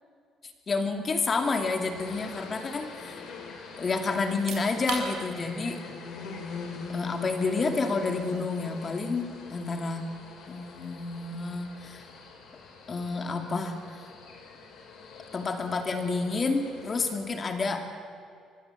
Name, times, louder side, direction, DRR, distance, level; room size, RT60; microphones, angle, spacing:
voice 1, 0.7-3.2 3.8-5.8 6.9-10.1 10.5-12.1 12.9-14.1 15.3-17.9, left 4 dB, 25° left, 5 dB, 2.5 m, -29 dB
sound 1, 1.3-17.1, left 4 dB, 65° left, 4.9 m, -44 dB
sound 2, 4.2-16.9, right 6 dB, 75° right, 5.6 m, -47 dB
24.5 x 22.5 x 8.3 m, 2.4 s
cardioid pair, 175°, 0 cm